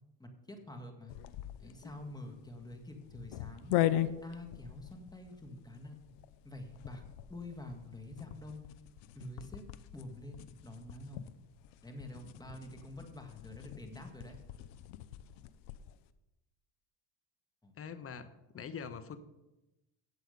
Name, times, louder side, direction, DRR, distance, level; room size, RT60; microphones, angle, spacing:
voice 1, 0.2-1.1 1.6-3.7 4.2-6.0 6.4-7.0 7.3-8.7 9.1-9.6 9.9-11.3 11.8-14.4 17.6-17.8, left 1 dB, 10° left, 4 dB, 2.1 m, -47 dB
sound 1, 1.1-16.0, left 13 dB, 85° left, 0.8 m, -40 dB
voice 2, 17.8-19.2, left 6 dB, 35° left, 12 dB, 1.1 m, -44 dB
16.0 x 7.7 x 5.3 m, 0.99 s
cardioid pair, 115°, 41 cm